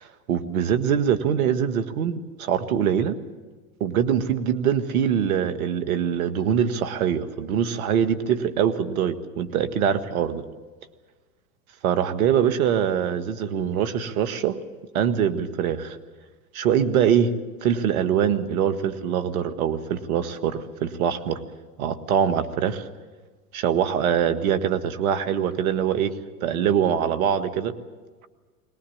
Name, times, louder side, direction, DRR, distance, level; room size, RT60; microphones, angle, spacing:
voice 1, 0.0-3.1 3.8-10.4 11.8-14.6 14.9-16.0 16.5-17.3 17.6-21.4 21.8-22.9 23.5-26.1 26.4-27.7, right 8 dB, 65° right, 11 dB, 1.8 m, -23 dB
22.0 x 19.0 x 8.6 m, 1.4 s
hypercardioid pair, 110°, 45 cm